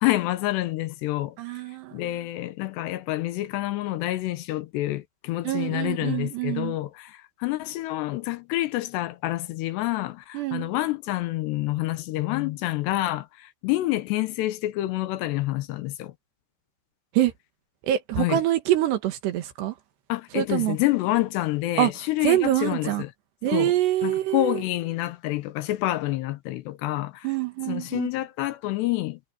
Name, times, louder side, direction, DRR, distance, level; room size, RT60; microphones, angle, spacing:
voice 1, 0.0-1.3 1.9-16.1 18.2-18.4 20.1-23.1 23.5-23.7 24.0-27.3 27.7-29.2, left 16 dB, 80° left, 3.0 m, -28 dB
voice 2, 1.4-2.0 5.4-6.8 10.3-10.7 17.1-17.3 17.8-19.8 20.4-20.8 21.8-21.9 22.2-23.0 23.4-24.6 27.2-28.1, right 13 dB, 75° right, 3.7 m, -25 dB
omnidirectional pair, 5.1 m